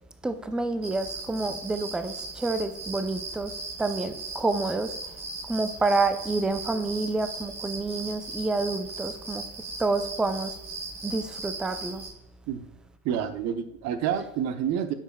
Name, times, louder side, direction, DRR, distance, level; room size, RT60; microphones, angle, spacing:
voice 1, 0.2-5.0 5.5-9.4 9.8-10.5 11.0-12.0, right 3 dB, ahead, 0.4 m, -28 dB
sound 1, 0.8-12.1, right 3 dB, 85° right, 3.0 m, -38 dB
voice 2, 13.0-14.9, right 9 dB, 40° right, 0.9 m, -28 dB
9.9 x 7.3 x 2.2 m
hypercardioid pair, 85°, 41 cm